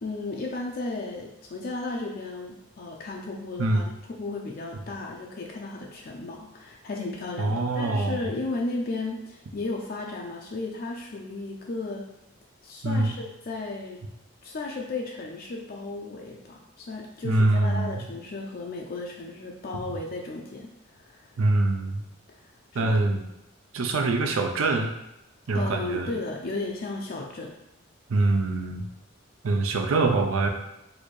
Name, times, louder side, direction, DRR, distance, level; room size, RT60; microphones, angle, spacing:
voice 1, 0.0-12.0 12.6-14.0 14.4-21.3 22.7-22.9 25.5-27.5, left 3 dB, 45° left, -1 dB, 0.4 m, -34 dB
voice 2, 7.4-8.2 12.8-13.1 17.2-18.0 21.4-22.0 22.7-23.2 23.7-24.9 25.5-26.1 28.1-28.9 29.4-30.5, right 2 dB, 80° right, 4 dB, 0.5 m, -24 dB
4.1 x 2.6 x 3.1 m, 0.89 s
head